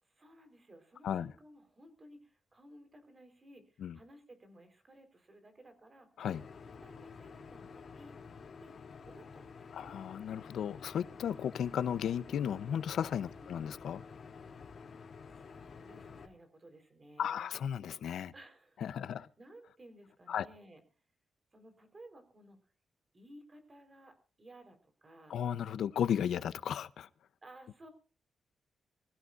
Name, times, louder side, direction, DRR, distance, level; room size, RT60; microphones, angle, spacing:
voice 1, 0.0-6.1 6.8-8.2 8.6-8.7 9.1-10.0 13.4-13.7 14.6-14.9 15.3-17.5 18.3-20.8 21.5-22.6 23.1-25.4 27.4-27.9, right 1 dB, 30° right, 4.4 m, -57 dB
sound 1, 6.3-16.3, left 5 dB, 55° left, 3.1 m, -50 dB
voice 2, 9.7-14.0 17.2-18.3 18.8-19.3 20.3-20.5 25.3-27.1, left 9 dB, 90° left, 0.8 m, -35 dB
25.5 x 15.5 x 2.6 m
wide cardioid pair, 125°, 0 cm